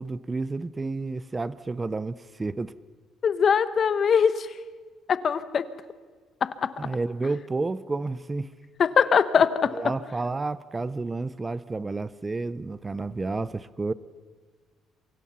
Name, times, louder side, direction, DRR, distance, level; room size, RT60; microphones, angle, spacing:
voice 1, 0.0-2.7 6.8-8.5 9.7-13.9, right 3 dB, 20° right, 0.7 m, -30 dB
voice 2, 3.2-4.5 5.1-5.6 6.4-6.5 8.8-9.7, left 6 dB, 40° left, 1.1 m, -21 dB
28.0 x 24.5 x 5.8 m
cardioid pair, 135°, 0 cm